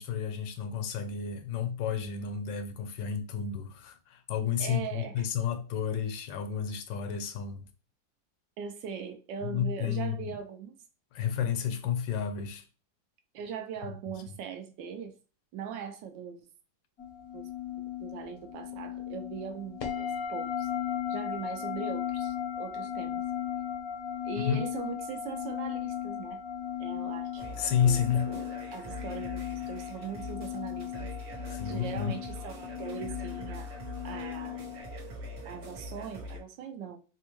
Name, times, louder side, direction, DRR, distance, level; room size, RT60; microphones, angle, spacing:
voice 1, 0.0-7.6 9.4-10.4 11.1-12.6 14.1-14.4 24.4-24.6 27.6-28.3 31.5-32.1, left 8 dB, 80° left, 1.3 m, -31 dB
voice 2, 4.6-5.1 8.6-10.7 13.3-15.1 15.5-16.4 17.3-17.5 17.8-20.7 21.1-23.2 24.2-26.4 26.8-27.4 27.8-28.0 28.3-31.1 31.6-33.7 34.0-34.6 35.4-37.0, right 7 dB, 75° right, 1.2 m, -40 dB
sound 1, 17.0-35.0, left 9 dB, 65° left, 1.0 m, -36 dB
sound 2, 27.4-36.4, left 1 dB, 60° right, 1.5 m, -43 dB
4.3 x 2.3 x 2.9 m
omnidirectional pair, 2.1 m